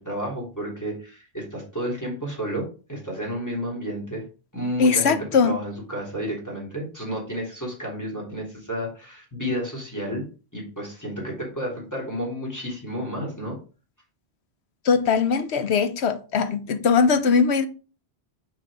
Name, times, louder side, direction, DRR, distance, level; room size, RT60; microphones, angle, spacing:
voice 1, 0.0-4.2 4.5-5.2 5.4-10.2 10.5-13.6, equal, 15° left, 3.1 m, -31 dB
voice 2, 4.8-5.6 14.8-17.7, left 5 dB, 90° left, 1.1 m, -20 dB
6.2 x 4.8 x 4.8 m
omnidirectional pair, 1.1 m